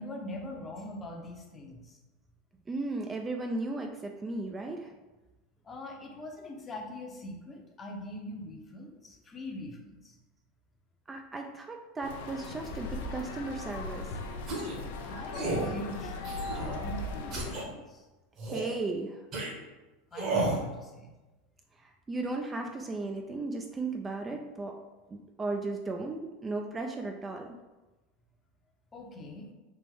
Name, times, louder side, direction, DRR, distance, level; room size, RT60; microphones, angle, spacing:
voice 1, 0.0-2.0 5.6-10.2 15.0-16.2 16.4-18.1 20.1-21.1 28.9-29.5, left 1 dB, 25° left, 1 dB, 0.7 m, -42 dB
voice 2, 2.7-4.9 11.1-14.1 18.4-19.2 21.8-24.7 25.1-27.6, right 3 dB, 20° right, 3 dB, 0.3 m, -35 dB
sound 1, 12.0-17.7, left 2 dB, 70° left, 0.4 m, -38 dB
sound 2, 14.5-14.8 15.3-15.7 16.2-16.8 17.3-17.6 18.4-18.8 19.3-19.5 20.1-20.6, right 2 dB, 45° right, 1.1 m, -32 dB
3.4 x 2.4 x 3.5 m, 1.1 s
hypercardioid pair, 95°, 0 cm